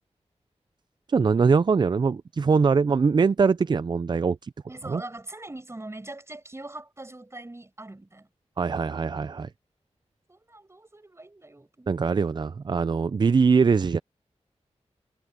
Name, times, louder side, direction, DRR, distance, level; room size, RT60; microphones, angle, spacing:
voice 1, 1.1-4.5 4.8-5.0 8.6-9.5 11.9-14.0, right 5 dB, 40° right, 0.4 m, -22 dB
voice 2, 4.7-8.3 10.3-12.2, right 2 dB, 25° right, 5.8 m, -42 dB
wide cardioid pair, 105°, 12 cm